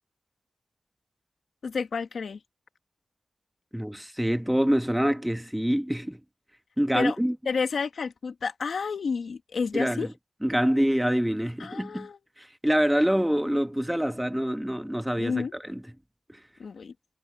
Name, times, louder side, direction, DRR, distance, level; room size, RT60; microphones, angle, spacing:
voice 1, 1.6-2.4 6.9-7.2 7.5-10.1 11.6-12.2 15.2-15.5 16.6-16.9, left 5 dB, 75° left, 1.9 m, -30 dB
voice 2, 3.7-6.2 6.8-7.3 9.7-10.1 10.4-12.1 12.4-15.8, equal, 5° right, 1.3 m, -26 dB
wide cardioid pair, 125°, 0 cm